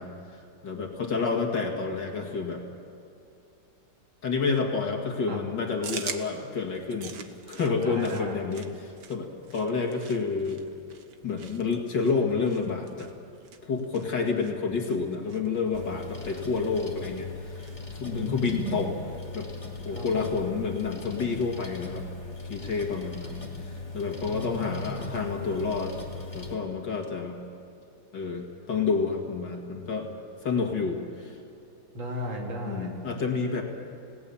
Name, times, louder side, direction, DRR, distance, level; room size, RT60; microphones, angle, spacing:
voice 1, 0.0-2.6 4.2-7.2 7.5-10.6 11.2-13.1 13.6-18.9 19.3-19.5 19.8-22.1 22.5-26.0 26.3-27.4 28.1-30.1 30.4-31.4 32.6-33.6, left 4 dB, 65° left, 1 dB, 2.8 m, -29 dB
sound 1, 5.8-17.9, right 6 dB, 65° right, 1.8 m, -45 dB
voice 2, 7.8-8.4 18.1-18.8 19.9-20.4 24.3-25.2 31.9-32.9, equal, 85° right, -1 dB, 3.4 m, -35 dB
sound 2, 15.7-26.5, left 3 dB, 20° left, 2.8 m, -39 dB
29.5 x 18.0 x 7.1 m, 2.7 s
omnidirectional pair, 2.1 m